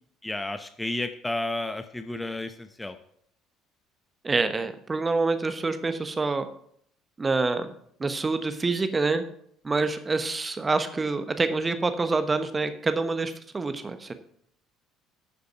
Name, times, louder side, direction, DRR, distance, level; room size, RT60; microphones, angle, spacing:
voice 1, 0.2-3.0, left 2 dB, 10° left, 9 dB, 0.7 m, -32 dB
voice 2, 4.2-6.5 7.2-7.7 8.0-9.2 9.6-14.1, right 3 dB, 20° right, 9 dB, 1.1 m, -26 dB
11.0 x 6.8 x 5.6 m, 0.67 s
figure-of-eight pair, 55°, 0 cm